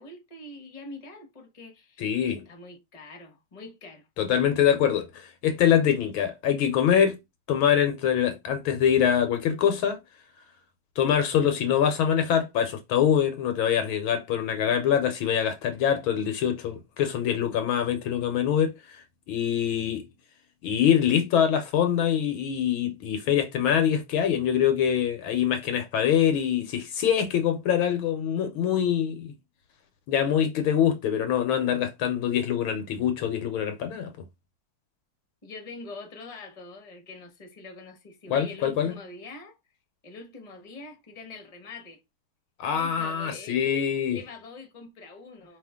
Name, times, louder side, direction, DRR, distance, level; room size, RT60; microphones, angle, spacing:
voice 1, 0.0-4.1 35.4-39.6 40.0-42.0 42.7-45.6, left 3 dB, 20° left, 1.2 m, -44 dB
voice 2, 2.0-2.4 4.2-7.2 7.5-10.0 11.0-20.1 20.6-29.3 30.1-34.1 38.3-38.9 42.6-44.2, left 9 dB, 75° left, 1.6 m, -24 dB
5.0 x 3.0 x 3.6 m
omnidirectional pair, 2.4 m